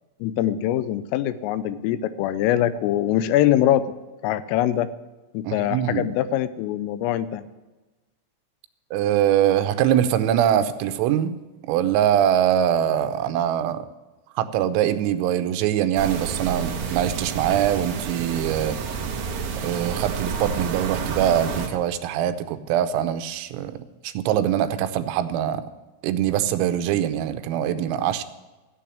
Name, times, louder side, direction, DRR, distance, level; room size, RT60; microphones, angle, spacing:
voice 1, 0.2-3.8 4.2-4.9 5.3-7.4, left 12 dB, 85° left, 14 dB, 3.3 m, -23 dB
voice 2, 5.5-6.1 8.9-11.4 11.7-13.9 14.4-18.8 19.6-25.6 26.0-28.2, right 10 dB, 90° right, 10 dB, 3.5 m, -23 dB
sound 1, 16.0-21.7, right 6 dB, 60° right, 2.5 m, -29 dB
15.0 x 7.6 x 10.0 m, 1.2 s
omnidirectional pair, 5.9 m